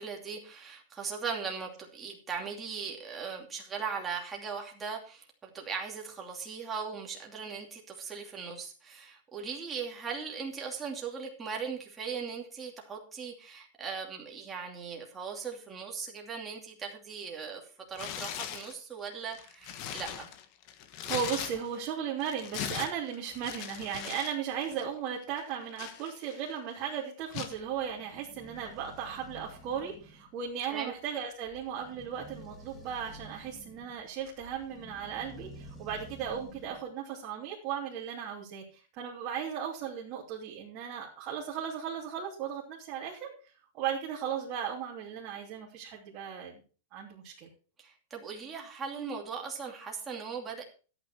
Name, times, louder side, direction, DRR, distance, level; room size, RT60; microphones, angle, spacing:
voice 1, 0.0-17.6 17.9-20.3 30.7-30.9 47.8-50.6, right 6 dB, 15° right, 0 dB, 2.7 m, -39 dB
Tearing, 17.9-18.7 19.3-21.9 22.2-24.4 24.6-24.8 25.4-26.5 27.3-27.6, left 9 dB, 40° left, 1.4 m, -39 dB
voice 2, 21.0-43.3 43.7-46.6 46.9-47.5, right 8 dB, 35° right, -3 dB, 2.9 m, -36 dB
sound 1, 27.2-36.9, equal, 5° left, 2.1 m, -51 dB
13.5 x 9.0 x 4.5 m, 0.38 s
supercardioid pair, 165°, 0 cm